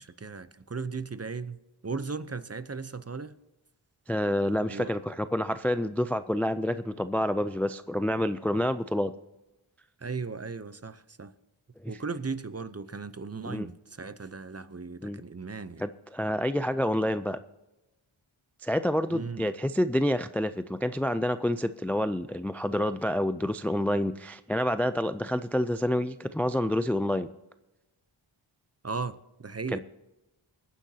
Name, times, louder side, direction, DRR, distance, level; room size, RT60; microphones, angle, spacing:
voice 1, 0.0-1.6 1.8-3.3 4.7-4.9 10.0-11.3 11.9-15.8 19.1-19.5 28.8-29.8, right 4 dB, 30° right, 0.6 m, -37 dB
voice 2, 4.1-9.1 11.8-11.9 13.5-13.7 15.0-15.2 15.8-17.4 18.6-27.3 29.7-29.8, left 1 dB, 5° left, 0.3 m, -28 dB
24.0 x 10.0 x 2.8 m
wide cardioid pair, 60°, 50 cm